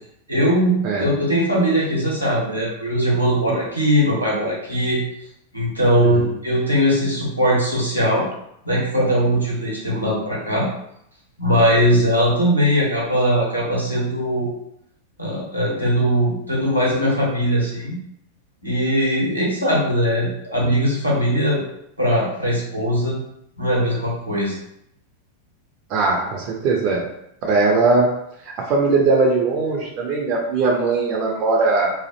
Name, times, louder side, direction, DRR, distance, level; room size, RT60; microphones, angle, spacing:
voice 1, 0.3-5.0 5.5-8.3 8.6-10.7 11.4-14.5 15.2-18.0 18.6-21.6 22.0-23.2 23.6-24.6, equal, 90° right, -6 dB, 0.8 m, -20 dB
voice 2, 6.0-6.3 25.9-27.1 27.4-28.1 28.4-31.9, right 3 dB, 40° right, 0 dB, 0.4 m, -20 dB
2.4 x 2.0 x 2.7 m, 0.76 s
figure-of-eight pair, 90°, 0 cm